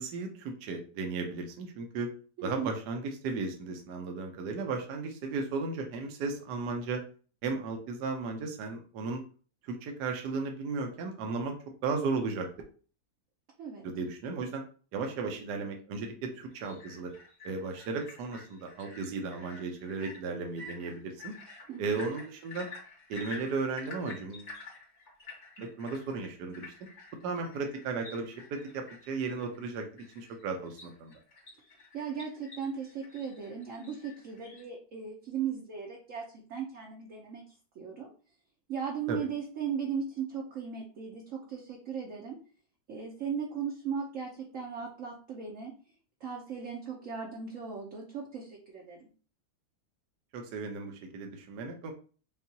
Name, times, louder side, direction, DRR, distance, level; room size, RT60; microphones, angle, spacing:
voice 1, 0.0-2.1 2.4-7.0 7.4-9.2 9.6-11.6 11.8-12.5 13.8-14.6 14.9-17.1 17.4-21.3 21.8-22.7 23.1-24.5 25.6-26.7 27.2-29.9 30.1-31.1 39.1-39.2 50.3-51.9, right 4 dB, 70° right, 3 dB, 1.3 m, -35 dB
voice 2, 2.4-2.7 13.6-13.8 21.7-22.0 31.9-36.2 36.5-37.4 37.8-38.1 38.7-42.4 42.9-45.7 46.2-49.0, right 6 dB, 55° right, -2 dB, 1.0 m, -37 dB
sound 1, 16.5-34.6, left 3 dB, 40° left, 1.5 m, -50 dB
5.4 x 2.4 x 2.8 m, 0.39 s
omnidirectional pair, 1.9 m